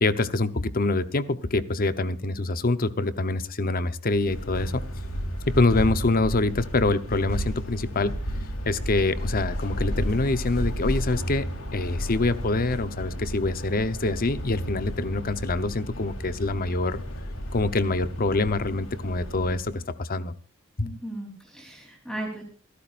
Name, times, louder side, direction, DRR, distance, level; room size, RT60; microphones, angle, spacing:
voice 1, 0.0-4.8 5.5-8.1 8.6-17.0 17.5-20.3 20.8-20.9, left 2 dB, 45° left, 12 dB, 0.9 m, -25 dB
sound 1, 4.1-19.8, equal, 85° left, 3.9 m, -32 dB
voice 2, 20.8-22.4, right 1 dB, 5° left, 0 dB, 3.5 m, -36 dB
27.0 x 13.0 x 2.6 m, 0.38 s
head